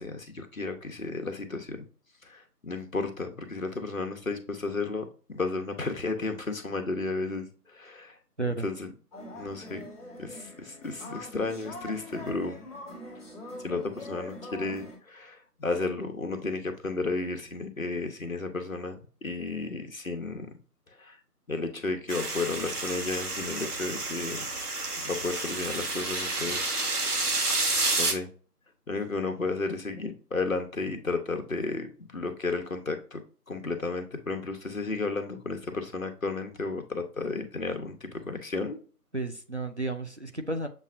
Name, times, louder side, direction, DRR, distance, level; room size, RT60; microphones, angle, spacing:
voice 1, 0.0-1.8 2.3-7.5 7.7-8.1 8.6-8.9 9.3-9.8 10.2-12.6 13.6-20.5 21.0-21.2 21.5-24.4 25.0-26.8 28.0-28.3 28.9-33.2 33.5-38.8, left 3 dB, 55° left, 1.0 m, -33 dB
sound 1, 9.1-15.0, left 1 dB, 10° left, 1.4 m, -43 dB
sound 2, 22.1-28.1, right 2 dB, 70° right, 1.4 m, -30 dB
voice 2, 39.1-40.7, right 2 dB, 50° right, 0.5 m, -32 dB
7.2 x 2.5 x 2.5 m
figure-of-eight pair, 165°, 47 cm